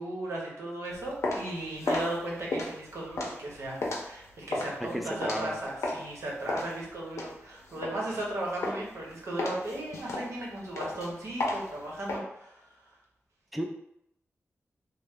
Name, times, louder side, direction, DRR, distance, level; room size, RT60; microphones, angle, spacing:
voice 1, 0.0-3.8 4.0-12.9, right 1 dB, 70° right, -3 dB, 0.9 m, -36 dB
sound 1, 0.9-6.1 6.5-8.3 8.6-9.0 9.4-12.2, left 2 dB, 75° left, 0.5 m, -33 dB
voice 2, 4.9-5.6 13.5-13.7, equal, ahead, 2 dB, 0.3 m, -33 dB
3.0 x 2.0 x 3.4 m, 0.81 s
wide cardioid pair, 170°, 5 cm